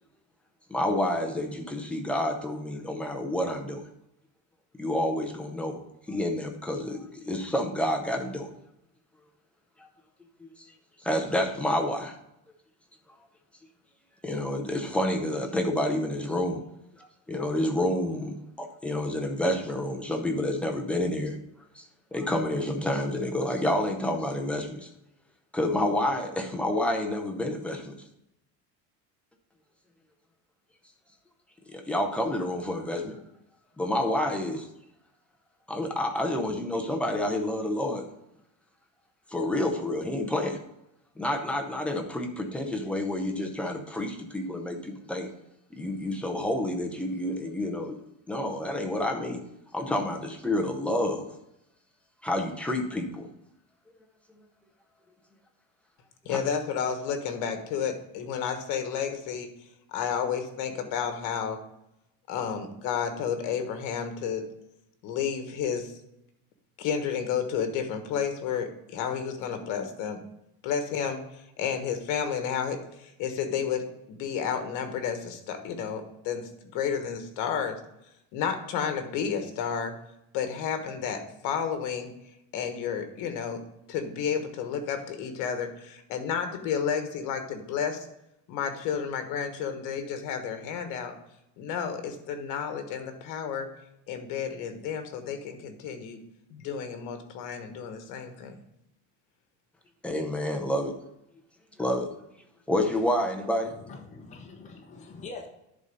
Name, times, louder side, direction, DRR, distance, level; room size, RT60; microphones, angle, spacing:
voice 1, 0.7-3.8 4.8-5.8 6.1-8.5 9.8-9.9 10.4-10.5 11.0-12.1 14.2-16.6 17.0-21.4 21.7-21.8 22.1-24.9 25.5-27.9 31.7-33.2 33.8-34.7 35.7-38.1 39.3-40.6 41.2-45.3 45.8-48.0 48.3-49.4 49.7-51.3 52.2-53.3 56.3-56.4 100.0-100.9 101.8-102.1 102.7-103.7, left 1 dB, 5° left, 2 dB, 0.7 m, -29 dB
voice 2, 56.2-59.5 59.9-61.6 62.3-64.4 65.0-65.9 66.8-70.2 70.6-77.8 78.3-79.9 80.3-82.1 82.5-83.6 83.9-88.1 88.5-91.1 91.6-93.7 94.1-96.2 96.5-98.6, left 7 dB, 60° left, 7 dB, 1.4 m, -31 dB
voice 3, 103.6-105.5, left 3 dB, 20° left, 0 dB, 1.1 m, -44 dB
10.5 x 4.1 x 5.3 m, 0.83 s
cardioid pair, 180°, 34 cm